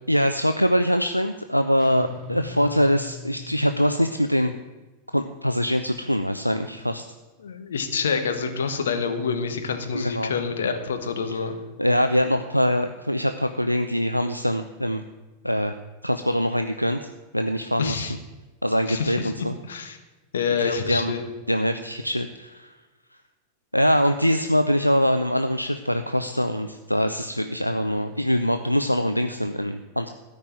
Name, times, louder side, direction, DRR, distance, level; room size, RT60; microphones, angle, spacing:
voice 1, 0.1-4.5 5.1-7.0 9.9-10.3 11.3-11.4 11.8-15.0 15.4-15.8 16.0-18.0 18.6-19.6 20.6-21.1 21.5-22.7 23.7-30.1, equal, 90° left, 8 dB, 0.5 m, -23 dB
sound 1, 1.8-4.4, left 3 dB, 35° left, 1.9 m, -41 dB
voice 2, 7.4-11.6 17.8-18.1 18.9-20.0 20.3-21.2, left 5 dB, 65° left, 7 dB, 1.4 m, -27 dB
13.5 x 5.4 x 9.2 m, 1.2 s
figure-of-eight pair, 90°, 0 cm